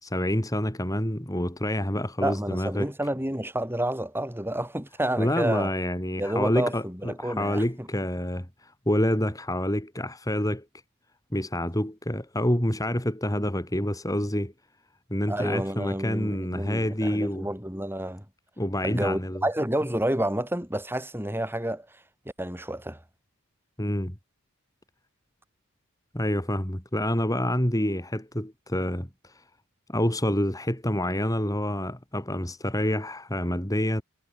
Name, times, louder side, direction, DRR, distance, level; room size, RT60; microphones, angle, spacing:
voice 1, 0.0-2.9 5.2-10.7 11.3-14.5 15.1-17.5 18.6-19.4 23.8-24.2 26.1-29.4 29.9-34.0, left 1 dB, 15° left, 3.8 m, -27 dB
voice 2, 2.2-5.7 6.2-7.9 15.3-18.2 18.8-21.9 22.4-23.0, right 1 dB, 10° right, 7.9 m, -29 dB
head